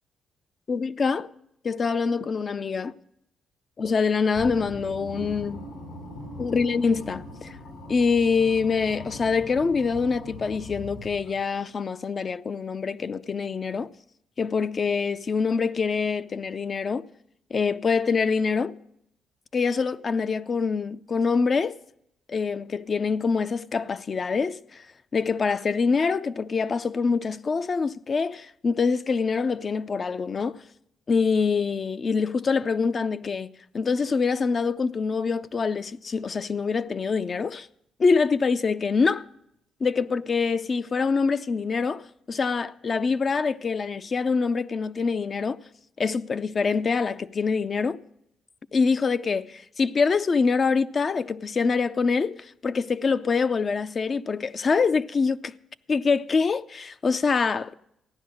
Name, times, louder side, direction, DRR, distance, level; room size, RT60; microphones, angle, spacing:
voice 1, 0.7-1.3 1.6-2.9 3.8-5.7 6.4-7.6 7.9-13.9 14.4-17.1 17.5-18.8 19.5-21.8 22.3-24.9 25.1-30.6 31.1-33.5 33.7-37.7 38.0-39.2 39.8-45.6 46.0-48.0 48.7-55.5 55.9-57.7, left 5 dB, 40° left, 0.5 m, -25 dB
sound 1, 4.3-11.6, left 1 dB, 85° left, 7.7 m, -41 dB
14.5 x 10.5 x 6.3 m
cardioid pair, 90°, 0 cm